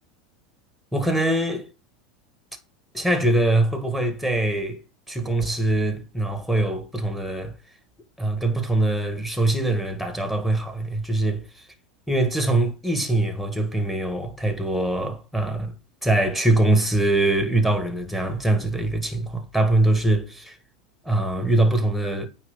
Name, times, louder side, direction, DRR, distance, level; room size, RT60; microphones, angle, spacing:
voice 1, 0.9-1.7 2.9-7.5 8.2-11.6 12.1-15.7 16.0-20.6 21.1-22.3, right 2 dB, ahead, 1.8 m, -23 dB
9.1 x 3.1 x 5.6 m
hypercardioid pair, 85°, 3 cm